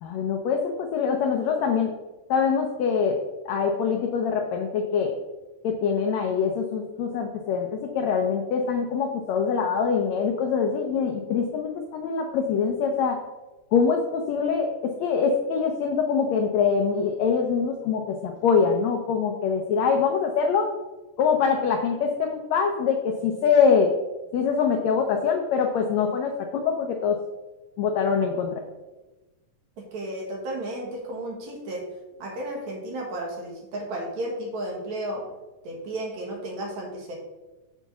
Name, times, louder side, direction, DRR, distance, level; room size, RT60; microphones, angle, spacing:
voice 1, 0.0-1.9 2.3-3.2 3.4-5.1 5.6-13.2 13.7-20.7 21.2-23.9 24.3-27.2 27.8-28.6, left 6 dB, 90° left, 3 dB, 1.5 m, -24 dB
voice 2, 29.8-31.8 32.2-35.2 35.6-37.2, right 1 dB, 60° right, -1 dB, 2.6 m, -33 dB
7.1 x 4.6 x 6.8 m, 1.1 s
omnidirectional pair, 4.0 m